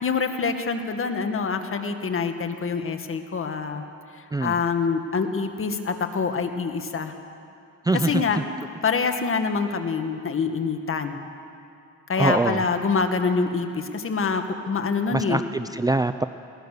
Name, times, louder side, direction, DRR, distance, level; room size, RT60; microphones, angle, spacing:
voice 1, 0.0-3.8 4.1-7.1 8.0-8.4 8.8-11.2 12.1-15.4, left 5 dB, 45° left, 6 dB, 1.8 m, -25 dB
voice 2, 7.8-8.2 12.2-12.6 15.1-16.3, right 2 dB, 10° right, 10 dB, 0.5 m, -23 dB
22.0 x 18.0 x 6.7 m, 2.5 s
cardioid pair, 90°, 30 cm